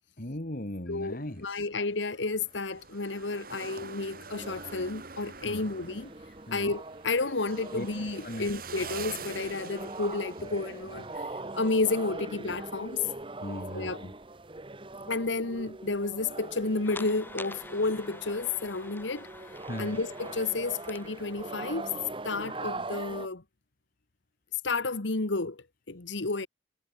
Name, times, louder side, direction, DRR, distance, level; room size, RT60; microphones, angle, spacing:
voice 1, 0.2-1.4 5.4-5.7 6.5-6.7 7.7-7.9 8.2-8.5 13.4-14.1 19.7-20.0, left 1 dB, 50° left, 2.1 m, -37 dB
voice 2, 0.9-6.1 6.5-11.3 11.5-13.1 13.7-14.0 15.1-19.3 19.8-21.9 22.2-23.4 24.6-26.5, left 3 dB, 85° left, 1.5 m, -31 dB
sound 1, 0.9-11.9 12.2-12.3 14.3-14.6, right 5 dB, 50° right, 3.3 m, -46 dB
sound 2, 4.3-23.3, right 2 dB, 30° right, 1.4 m, -42 dB
sound 3, 16.8-22.1, left 2 dB, 10° left, 1.7 m, -48 dB
head